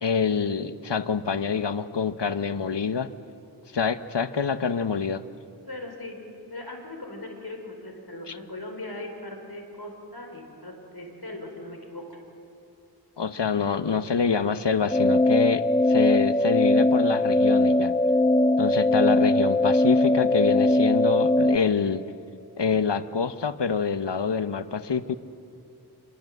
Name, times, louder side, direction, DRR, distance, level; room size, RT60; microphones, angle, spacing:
voice 1, 0.0-3.1 3.7-5.2 8.3-8.4 13.2-17.9 18.6-22.0 22.6-25.2, left 6 dB, 80° left, 11 dB, 0.9 m, -26 dB
voice 2, 5.7-6.2 6.5-12.2, left 2 dB, 65° left, 3 dB, 4.7 m, -39 dB
sound 1, 14.9-21.6, left 1 dB, 10° left, 0.8 m, -21 dB
26.5 x 21.5 x 7.9 m, 2.7 s
wide cardioid pair, 50°, 42 cm